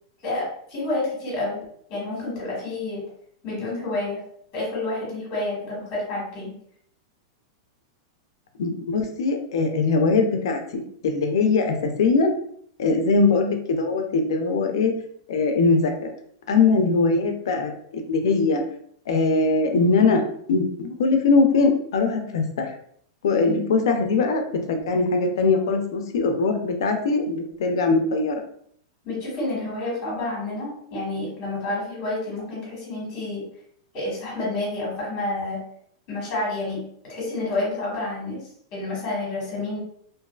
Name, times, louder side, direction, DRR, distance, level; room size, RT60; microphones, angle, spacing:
voice 1, 0.2-1.6 1.9-3.0 3.4-4.2 4.5-6.5 23.5-23.8 29.0-33.4 33.9-35.6 36.1-36.8 37.1-38.4 38.7-39.8, left 2 dB, 30° left, -5 dB, 1.3 m, -29 dB
voice 2, 8.6-12.3 12.8-14.9 15.3-16.1 16.5-18.6 19.1-20.2 20.5-22.7 23.2-24.4 24.7-28.3, left 4 dB, 80° left, 5 dB, 0.5 m, -21 dB
2.5 x 2.3 x 2.3 m, 0.64 s
supercardioid pair, 160°, 2 cm